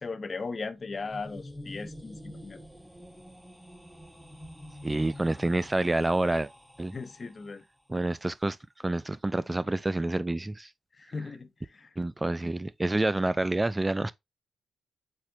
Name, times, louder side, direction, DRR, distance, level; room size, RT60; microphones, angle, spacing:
voice 1, 0.0-2.6 6.9-7.6 11.0-11.9 12.4-12.5, left 4 dB, 40° left, 0.6 m, -38 dB
sound 1, 0.6-7.6, left 1 dB, ahead, 0.8 m, -47 dB
voice 2, 4.8-6.5 6.8-6.9 7.9-8.6 8.8-10.7 12.0-14.1, right 2 dB, 20° right, 0.3 m, -28 dB
7.4 x 2.5 x 2.4 m
hypercardioid pair, 40°, 0 cm